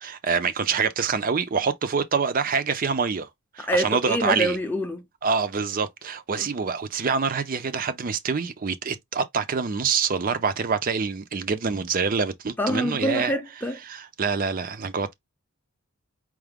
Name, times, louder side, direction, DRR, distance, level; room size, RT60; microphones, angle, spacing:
voice 1, 0.0-3.3 3.5-4.6 5.2-13.3 13.8-15.1, right 5 dB, 40° right, 0.5 m, -26 dB
voice 2, 3.7-5.1 6.4-6.5 12.6-13.8, equal, 10° left, 0.5 m, -26 dB
4.7 x 2.1 x 3.4 m
head